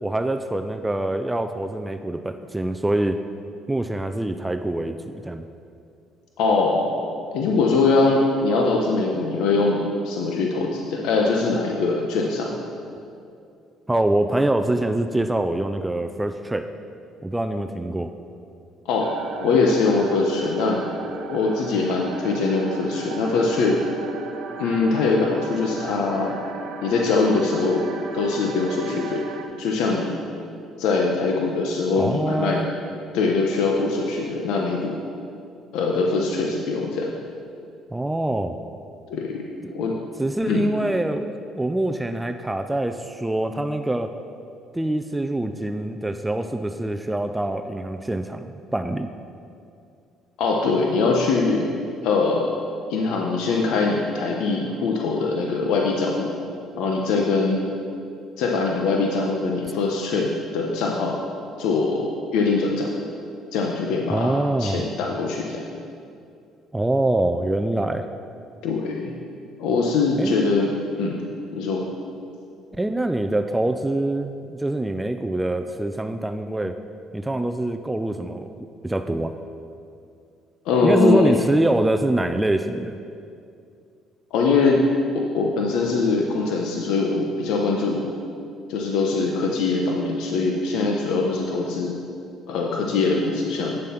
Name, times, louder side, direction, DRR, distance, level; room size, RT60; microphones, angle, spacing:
voice 1, 0.0-3.2 3.7-5.4 13.9-16.7 17.2-18.1 32.0-32.7 37.9-38.6 39.6-39.9 40.2-44.1 44.7-49.1 64.1-64.8 66.7-68.1 70.2-70.4 72.8-76.8 77.1-79.4 80.8-82.9, right 1 dB, 10° right, 7 dB, 0.4 m, -24 dB
voice 2, 6.4-6.9 7.3-12.6 18.9-19.1 19.4-20.8 21.3-23.8 24.6-26.3 26.8-27.8 28.1-29.2 29.6-30.2 30.8-32.6 33.1-35.0 35.7-37.1 39.1-40.0 40.5-40.7 50.4-51.7 52.0-52.5 52.9-56.3 56.8-57.6 58.4-61.2 61.6-62.9 63.5-65.6 68.6-69.1 69.6-70.7 71.0-71.2 71.5-71.8 80.6-81.4 84.3-84.8 85.1-88.0 88.7-92.0 92.5-93.8, left 4 dB, 80° left, 0 dB, 1.0 m, -22 dB
sound 1, 19.0-29.4, right 5 dB, 75° right, 1.0 m, -36 dB
9.2 x 7.5 x 5.8 m, 2.5 s
cardioid pair, 105°, 0 cm